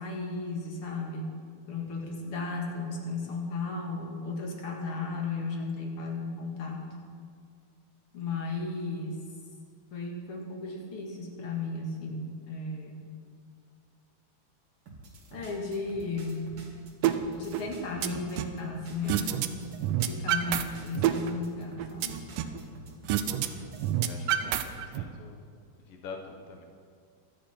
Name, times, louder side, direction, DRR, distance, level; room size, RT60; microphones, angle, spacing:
voice 1, 0.0-1.3 1.7-6.9 8.1-9.2 9.9-13.0 15.3-16.5 17.3-19.4 20.1-22.2, left 3 dB, 45° left, 0 dB, 2.3 m, -35 dB
sound 1, 14.9-24.0, right 2 dB, 45° right, 2.5 m, -48 dB
sound 2, 17.0-17.2 17.5-18.6 19.1-19.5 19.7-20.6 20.9-22.6 23.1-23.5 23.7-25.0, right 11 dB, 80° right, 2.2 m, -27 dB
voice 2, 22.4-22.8 24.0-25.4 25.9-26.6, left 4 dB, 80° left, 2 dB, 1.3 m, -46 dB
24.0 x 8.4 x 4.4 m, 2.1 s
omnidirectional pair, 4.1 m